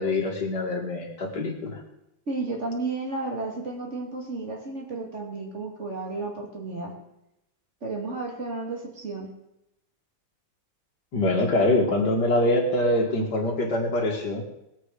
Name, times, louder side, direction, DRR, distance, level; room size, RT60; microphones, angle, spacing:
voice 1, 0.0-1.8 11.1-14.4, left 1 dB, 60° left, 0 dB, 2.8 m, -24 dB
voice 2, 2.3-6.9 7.8-9.3, right 3 dB, 35° right, 0 dB, 3.0 m, -32 dB
19.0 x 8.6 x 5.0 m, 0.85 s
omnidirectional pair, 2.1 m